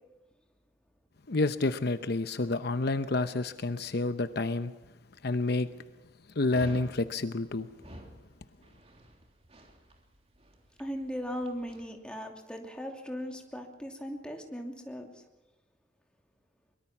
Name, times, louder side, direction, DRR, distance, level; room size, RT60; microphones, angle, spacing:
voice 1, 1.3-4.7 5.2-5.7 6.4-7.7, left 2 dB, 60° left, 0.9 m, -29 dB
Dog, 6.5-11.9, equal, 35° right, 3.2 m, -50 dB
voice 2, 10.8-15.2, equal, 5° left, 2.8 m, -38 dB
23.5 x 22.5 x 6.0 m
head